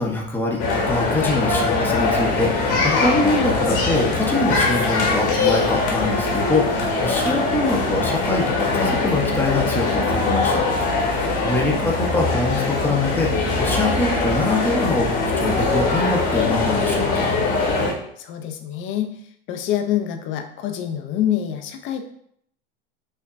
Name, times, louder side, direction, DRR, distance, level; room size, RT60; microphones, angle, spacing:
voice 1, 0.0-15.1 15.4-17.3, left 2 dB, 5° left, -1 dB, 0.8 m, -24 dB
sound 1, 0.6-17.9, left 3 dB, 60° left, 1.3 m, -22 dB
voice 2, 18.2-22.0, left 10 dB, 40° left, 5 dB, 0.6 m, -26 dB
5.4 x 2.2 x 2.5 m, 0.68 s
supercardioid pair, 105°, 30 cm